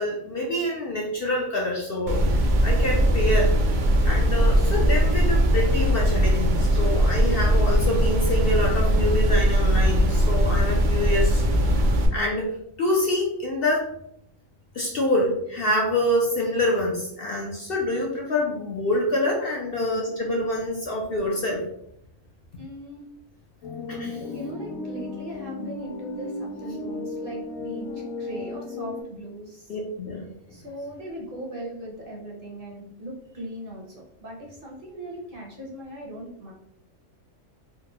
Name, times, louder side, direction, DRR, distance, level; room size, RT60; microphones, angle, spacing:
voice 1, 0.0-2.2 2.6-11.4 11.7-11.8 12.1-12.5 12.8-13.8 14.7-21.7 23.9-24.2 29.7-30.3, left 1 dB, 60° left, -2 dB, 0.6 m, -26 dB
sound 1, 2.1-12.1, equal, 75° right, 0.4 m, -20 dB
voice 2, 22.6-23.1 24.3-29.8 30.5-36.5, right 1 dB, 50° right, -2 dB, 0.8 m, -39 dB
sound 2, 23.6-29.0, left 2 dB, 90° left, 1.2 m, -34 dB
3.8 x 2.1 x 2.8 m, 0.76 s
omnidirectional pair, 1.4 m